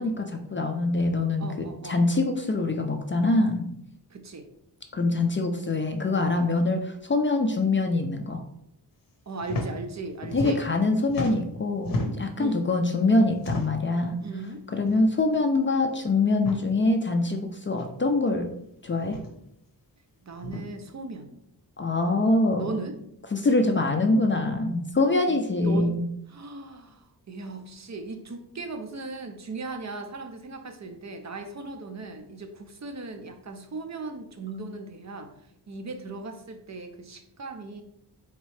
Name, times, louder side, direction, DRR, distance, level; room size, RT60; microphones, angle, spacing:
voice 1, 0.0-3.7 4.9-8.4 10.3-14.2 14.7-18.5 18.8-19.2 21.8-22.7 23.3-26.1, left 2 dB, 30° left, 4 dB, 0.4 m, -24 dB
voice 2, 1.4-2.0 4.1-4.5 5.6-5.7 9.3-10.7 12.4-12.6 14.2-14.6 20.3-21.3 22.6-22.9 25.3-25.9 26.3-35.3 35.7-37.8, right 3 dB, 45° right, 6 dB, 0.5 m, -37 dB
sound 1, 9.4-9.7 10.0-10.8 11.1-12.4 13.4-13.9 14.8-15.0 15.3-15.4 16.3-16.6 17.8-17.9 19.0-19.3 20.4-20.6, left 2 dB, 55° left, 0.9 m, -32 dB
4.1 x 3.6 x 3.2 m, 0.76 s
wide cardioid pair, 145°, 41 cm